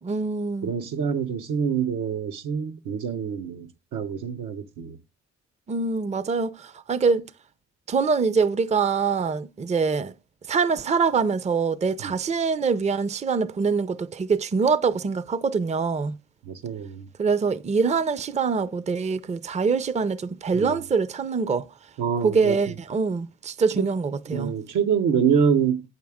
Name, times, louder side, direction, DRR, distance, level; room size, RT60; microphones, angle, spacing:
voice 1, 0.0-0.7 5.7-7.3 7.9-10.1 10.5-16.2 17.2-21.7 22.2-24.5, right 5 dB, 25° right, 0.5 m, -24 dB
voice 2, 0.6-5.0 12.0-12.1 16.4-17.1 20.5-20.8 22.0-22.7 23.8-23.9 24.3-25.8, right 7 dB, 80° right, 1.0 m, -26 dB
8.5 x 6.4 x 3.6 m
cardioid pair, 90°, 30 cm